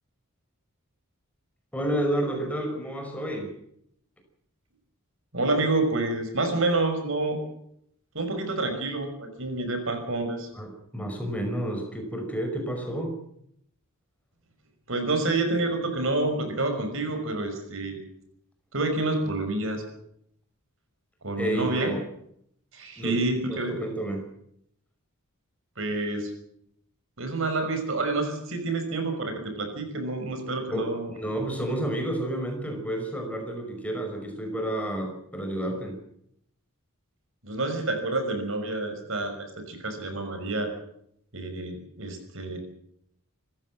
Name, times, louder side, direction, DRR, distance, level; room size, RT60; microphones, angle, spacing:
voice 1, 1.7-3.5 10.5-13.2 21.4-22.0 23.0-23.1 23.5-24.3 30.7-36.0, right 1 dB, 5° left, 3 dB, 5.3 m, -30 dB
voice 2, 5.3-7.4 8.1-10.5 14.9-18.0 18.7-19.8 21.2-21.9 22.7-23.8 25.8-26.3 27.2-31.1 37.4-40.7 41.3-42.6, right 2 dB, 60° right, 6 dB, 5.7 m, -28 dB
27.5 x 15.0 x 7.6 m, 0.72 s
head